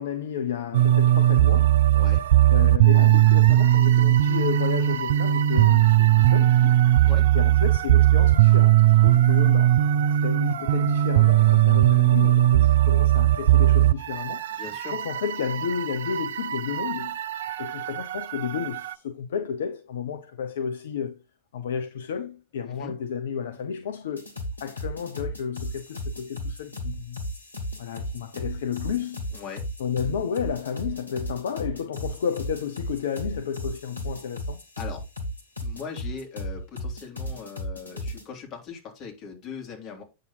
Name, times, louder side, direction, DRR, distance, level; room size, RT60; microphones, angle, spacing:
voice 1, 0.0-1.8 2.5-6.8 7.3-9.8 10.2-14.5 14.9-17.2 17.6-21.2 21.5-24.3 24.6-27.2 27.8-29.2 29.8-34.6, left 7 dB, 60° left, 0.6 m, -32 dB
sound 1, 0.7-18.9, right 13 dB, 60° right, 0.5 m, -19 dB
voice 2, 14.6-14.9 22.6-22.9 29.3-29.7 34.8-35.0 35.6-40.0, left 6 dB, 35° left, 3.0 m, -40 dB
sound 2, 24.2-38.2, equal, 75° left, 1.8 m, -34 dB
8.4 x 6.3 x 4.0 m
figure-of-eight pair, 90°, 0 cm